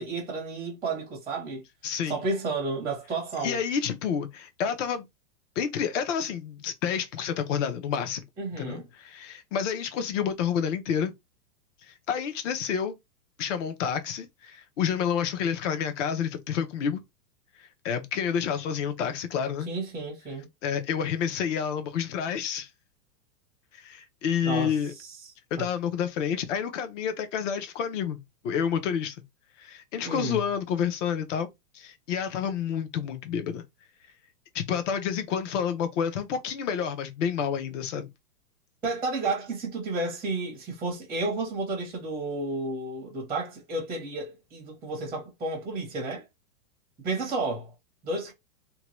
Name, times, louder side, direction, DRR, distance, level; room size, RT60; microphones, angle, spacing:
voice 1, 0.0-1.6 2.1-3.6 8.4-8.8 19.7-20.5 24.4-24.7 25.0-25.1 25.6-25.7 30.0-30.4 38.8-46.2 47.0-47.7 48.0-48.3, right 3 dB, 5° right, 0.6 m, -31 dB
voice 2, 1.8-2.2 3.4-5.1 5.6-8.2 8.6-11.1 11.8-13.0 13.4-17.0 17.6-19.7 20.6-22.7 23.7-24.9 25.5-29.2 29.6-31.5 31.7-33.6 34.5-38.1, left 7 dB, 50° left, 0.8 m, -29 dB
2.8 x 2.3 x 3.0 m
hypercardioid pair, 150°, 47 cm